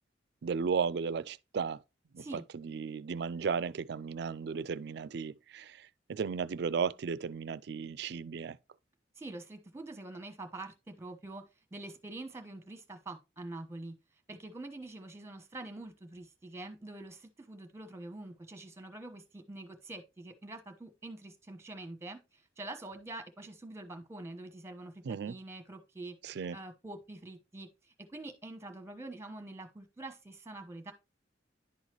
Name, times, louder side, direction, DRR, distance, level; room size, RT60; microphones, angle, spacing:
voice 1, 0.4-1.8 2.1-8.6 25.0-25.3 26.2-26.6, right 6 dB, 65° right, 0.4 m, -35 dB
voice 2, 9.2-11.4 11.7-13.9 14.3-22.2 22.6-27.7 28.1-30.9, right 2 dB, 15° right, 1.1 m, -45 dB
10.5 x 4.0 x 3.0 m
head